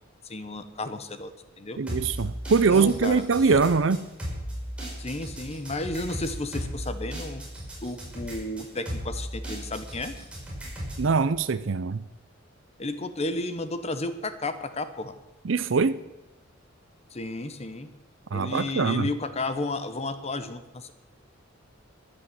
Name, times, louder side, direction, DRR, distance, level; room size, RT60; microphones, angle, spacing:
voice 1, 0.2-1.3 1.6-1.8 2.7-3.2 5.0-7.4 7.8-10.2 12.8-15.2 17.1-17.9 18.3-20.9, left 2 dB, 30° left, 10 dB, 1.0 m, -33 dB
voice 2, 1.8-4.0 11.0-12.0 15.4-16.0 18.3-19.1, right 4 dB, 65° right, 13 dB, 0.6 m, -23 dB
sound 1, 1.9-11.1, equal, 5° right, 5.1 m, -36 dB
14.5 x 10.0 x 7.0 m, 0.98 s
head